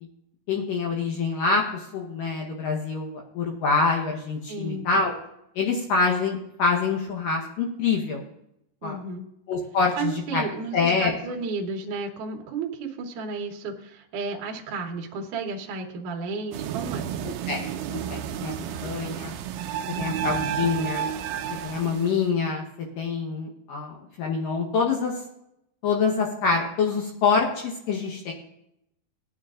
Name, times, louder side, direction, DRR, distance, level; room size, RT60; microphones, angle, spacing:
voice 1, 0.5-5.1 5.6-8.2 8.8-9.0 9.5-10.4 10.7-11.1 17.2-18.5 18.8-19.4 20.0-21.1 21.6-22.6 23.0-25.1 25.8-28.3, left 4 dB, 65° left, -1 dB, 2.3 m, -26 dB
voice 2, 4.5-4.8 8.8-9.3 10.0-17.1 18.3-18.8 20.0-20.1, right 4 dB, 65° right, 0 dB, 2.2 m, -33 dB
sound 1, 16.5-22.3, right 9 dB, 85° right, 2.2 m, -31 dB
19.0 x 9.5 x 2.5 m, 0.82 s
omnidirectional pair, 4.9 m